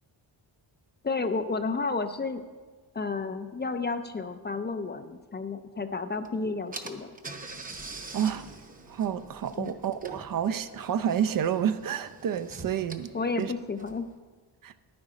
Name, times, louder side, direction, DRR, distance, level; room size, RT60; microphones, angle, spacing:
voice 1, 1.0-2.4 2.9-7.1 9.6-9.7 13.1-14.1, left 4 dB, 25° left, 9 dB, 0.4 m, -31 dB
Car / Engine, 6.2-6.3 6.7-14.2, right 3 dB, 20° right, 0.8 m, -45 dB
voice 2, 8.1-8.5 8.9-13.1 13.4-13.5 14.6-14.7, right 9 dB, 50° right, 13 dB, 0.5 m, -29 dB
10.5 x 9.5 x 4.9 m, 1.4 s
wide cardioid pair, 150°, 43 cm